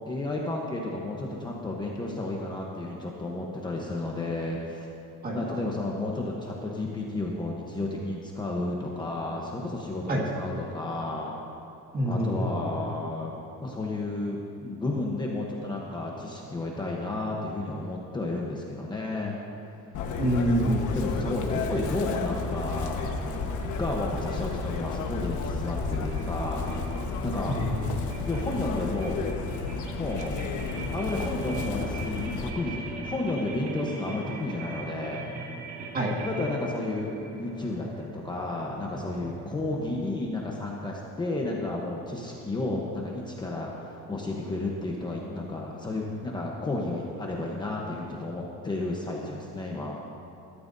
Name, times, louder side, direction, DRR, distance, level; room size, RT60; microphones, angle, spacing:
voice 1, 0.1-4.9 5.3-11.3 12.0-13.3 13.6-19.4 20.9-23.5 23.8-26.9 27.2-27.6 28.2-29.2 30.0-30.4 30.9-35.2 36.3-50.0, left 2 dB, 15° left, -2 dB, 0.9 m, -32 dB
voice 2, 5.2-5.6 10.1-10.2 11.9-12.7 20.1-20.8 27.5-28.0 35.9-36.1, equal, 30° right, -1 dB, 1.8 m, -27 dB
Chirp tweet, 19.9-32.5, left 4 dB, 70° left, 1.3 m, -32 dB
sound 1, 25.9-39.8, right 3 dB, 50° right, 2.2 m, -40 dB
21.0 x 13.0 x 2.7 m, 2.7 s
cardioid pair, 175°, 32 cm